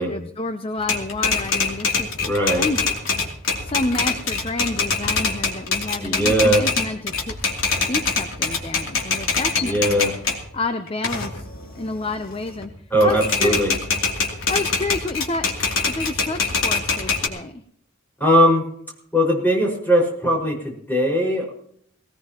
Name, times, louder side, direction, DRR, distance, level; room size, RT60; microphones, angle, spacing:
voice 1, 0.0-2.8 3.6-7.4 7.9-10.0 10.5-11.5 11.7-13.6 14.5-15.5 15.9-17.6, left 2 dB, 25° left, 8 dB, 0.7 m, -29 dB
Typewriter, 0.8-10.4 10.9-12.6 13.0-17.3, left 4 dB, 85° left, 3.0 m, -24 dB
voice 2, 2.2-2.7 6.0-6.6 9.6-10.1 12.9-13.7 18.2-18.6 19.1-21.5, equal, 10° left, -2 dB, 5.4 m, -19 dB
19.5 x 18.5 x 3.0 m, 0.65 s
head